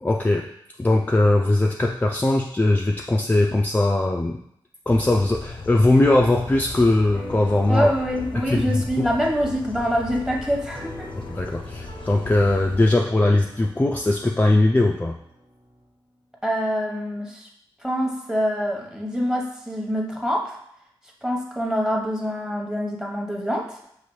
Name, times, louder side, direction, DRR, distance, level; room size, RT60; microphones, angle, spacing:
voice 1, 0.0-0.4 0.8-4.4 4.9-7.9 8.4-9.1 11.3-15.2, left 2 dB, 20° left, 0 dB, 0.4 m, -20 dB
sound 1, 4.9-12.9, left 3 dB, 70° left, 0.6 m, -37 dB
sound 2, 7.1-15.8, equal, 80° right, 1.5 m, -44 dB
voice 2, 7.7-11.1 16.4-17.5 17.8-20.6 21.2-23.8, equal, 5° right, 0 dB, 1.0 m, -25 dB
5.7 x 2.6 x 3.1 m, 0.75 s
cardioid pair, 55°, 9 cm